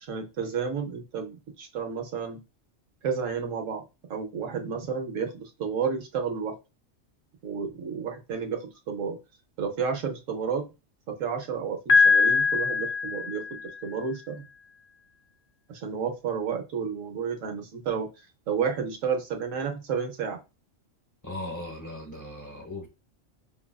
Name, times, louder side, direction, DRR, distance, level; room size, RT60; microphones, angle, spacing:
voice 1, 0.1-2.4 3.0-3.8 4.1-6.6 7.4-9.2 9.6-10.6 11.1-14.5 15.7-20.4, right 6 dB, 80° right, 1.2 m, -31 dB
Piano, 11.9-13.8, left 4 dB, 75° left, 1.0 m, -22 dB
voice 2, 21.2-22.9, left 1 dB, 15° left, 1.1 m, -38 dB
5.7 x 2.4 x 2.3 m
omnidirectional pair, 1.3 m